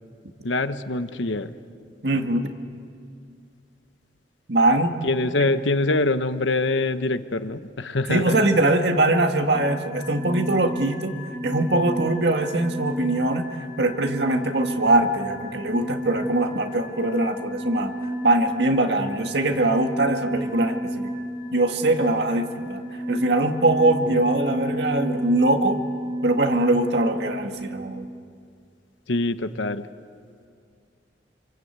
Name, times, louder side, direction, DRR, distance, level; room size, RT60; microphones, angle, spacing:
voice 1, 0.4-1.5 5.0-8.4 24.0-24.1 29.1-29.9, left 2 dB, 80° left, 10 dB, 1.1 m, -24 dB
voice 2, 2.0-2.5 4.5-5.0 8.1-11.2 11.4-13.5 13.8-18.0 18.2-21.1 21.5-25.8 26.2-28.1, right 2 dB, 60° right, 5 dB, 1.9 m, -22 dB
sound 1, 9.5-27.4, equal, 20° right, 2.8 m, -32 dB
27.5 x 25.5 x 8.2 m, 2.3 s
head